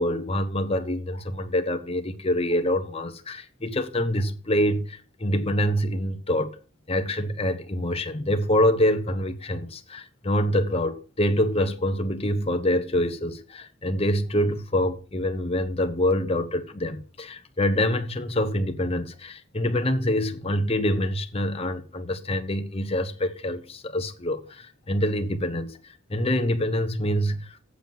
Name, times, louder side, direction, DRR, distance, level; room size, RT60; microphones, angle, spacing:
voice 1, 0.0-6.6 6.9-27.6, left 1 dB, 30° left, 1.1 m, -26 dB
8.2 x 7.2 x 5.9 m
head